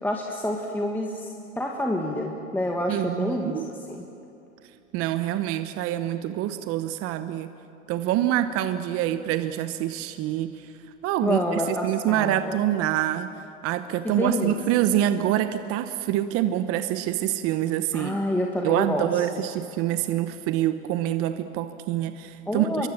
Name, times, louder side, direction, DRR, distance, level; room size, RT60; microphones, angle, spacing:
voice 1, 0.0-4.0 11.2-12.6 14.0-15.0 17.9-19.5 22.5-22.9, left 1 dB, 5° left, 0 dB, 1.7 m, -28 dB
voice 2, 2.9-3.6 4.9-7.5 7.9-10.5 11.0-11.4 11.8-13.3 13.6-18.2 18.6-22.9, right 12 dB, 35° right, 10 dB, 0.9 m, -26 dB
26.0 x 23.0 x 7.3 m, 2.7 s
hypercardioid pair, 120°, 42 cm